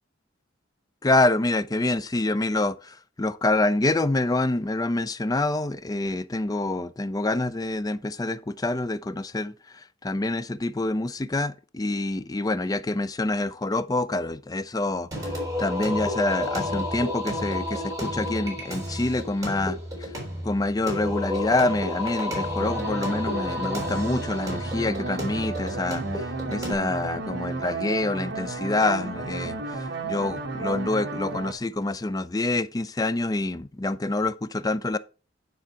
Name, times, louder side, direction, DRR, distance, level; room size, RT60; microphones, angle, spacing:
voice 1, 1.0-2.7 3.2-9.5 10.0-15.1 15.6-19.8 20.4-26.0 26.5-29.6 30.0-35.0, left 2 dB, 20° left, 0.4 m, -26 dB
Singing, 15.1-26.7, left 1 dB, 20° right, 3.9 m, -31 dB
sound 1, 22.6-31.5, right 3 dB, 60° right, 1.2 m, -33 dB
10.0 x 3.9 x 5.7 m
head